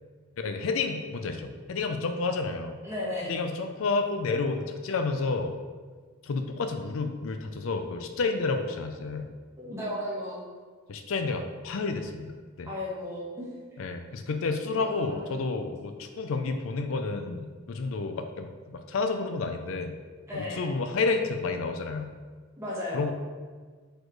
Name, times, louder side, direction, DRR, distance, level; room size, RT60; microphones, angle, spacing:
voice 1, 0.4-2.8 3.3-5.6 6.2-9.4 10.9-12.7 13.8-19.9 20.3-22.1 22.9-23.1, left 4 dB, 65° left, 6 dB, 0.4 m, -30 dB
voice 2, 2.8-3.3 9.6-10.4 12.6-13.5 14.7-15.3 20.3-20.7 22.6-23.1, left 1 dB, 15° right, -7 dB, 1.6 m, -34 dB
4.7 x 4.4 x 4.6 m, 1.5 s
head